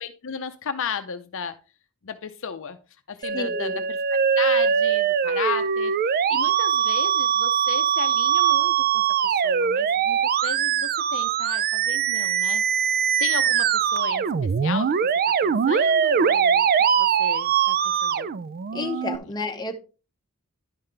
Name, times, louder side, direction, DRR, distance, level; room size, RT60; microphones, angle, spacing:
voice 1, 0.0-1.6 2.0-2.8 3.1-3.8 4.1-5.9 6.3-9.0 9.3-12.6 13.2-14.9 15.4-16.7 17.0-18.3 18.7-18.9, left 6 dB, 60° left, 9 dB, 0.6 m, -34 dB
Musical instrument, 3.2-19.2, right 7 dB, 45° right, 0.4 m, -22 dB
voice 2, 3.3-3.8 18.7-19.8, left 2 dB, 20° left, 3 dB, 0.9 m, -30 dB
10.5 x 5.7 x 3.3 m, 0.33 s
head